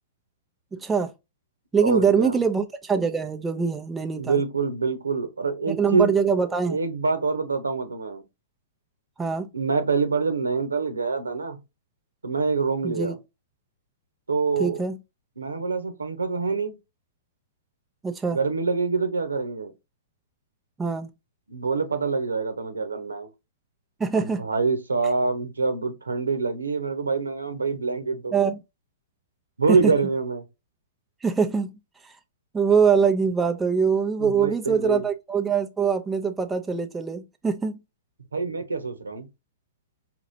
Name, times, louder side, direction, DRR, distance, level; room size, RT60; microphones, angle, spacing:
voice 1, 0.7-1.1 1.7-4.4 5.7-6.8 9.2-9.5 12.8-13.1 14.6-15.0 18.0-18.4 20.8-21.1 24.0-24.4 28.3-28.6 29.7-29.8 31.2-31.8 32.0-32.1 32.5-37.8, right 6 dB, 10° right, 0.6 m, -23 dB
voice 2, 1.8-2.4 4.2-8.2 9.5-11.6 12.2-13.2 14.3-14.8 15.4-16.8 18.3-19.7 21.5-23.3 24.1-28.3 29.6-30.4 34.2-35.0 38.3-39.3, right 4 dB, 85° right, 1.1 m, -26 dB
4.8 x 2.9 x 2.7 m
hypercardioid pair, 115°, 0 cm